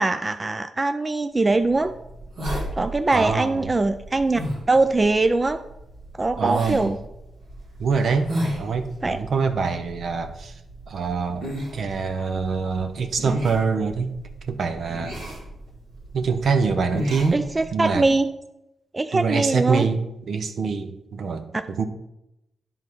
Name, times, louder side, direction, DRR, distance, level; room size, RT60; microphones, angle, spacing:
voice 1, 0.0-1.9 2.8-4.4 4.7-5.6 6.2-7.0 9.0-9.2 17.3-18.3 18.9-19.9, right 2 dB, 30° right, 9 dB, 0.4 m, -22 dB
sound 1, 1.5-18.1, equal, 85° right, 2.4 m, -35 dB
voice 2, 3.1-3.6 6.4-6.9 7.8-10.5 10.9-11.5 11.7-14.2 14.5-15.2 16.1-17.4 17.7-18.1 19.1-20.0 20.3-21.8, right 5 dB, 65° right, 8 dB, 0.7 m, -25 dB
10.5 x 3.7 x 4.6 m, 0.88 s
supercardioid pair, 40°, 0 cm